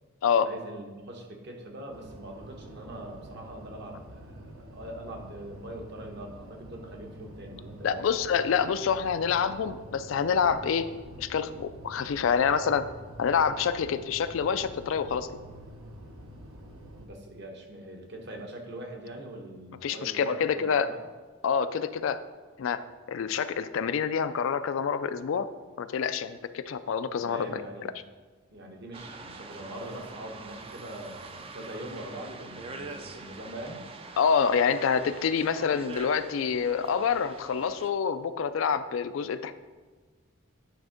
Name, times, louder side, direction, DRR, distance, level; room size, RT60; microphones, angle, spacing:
voice 1, 0.4-8.0 17.0-21.0 27.2-28.0 28.5-33.8, right 1 dB, 55° right, 2 dB, 1.0 m, -42 dB
sound 1, 1.9-17.1, right 1 dB, 80° right, 0.9 m, -47 dB
voice 2, 7.8-10.9 11.2-12.9 13.2-15.3 19.8-20.9 21.4-22.2 22.6-22.8 23.1-25.5 25.8-27.6 34.2-39.5, left 6 dB, 70° left, 12 dB, 0.4 m, -27 dB
sound 2, 28.9-37.9, right 3 dB, 25° right, 0.4 m, -44 dB
9.0 x 3.5 x 5.1 m, 1.4 s
head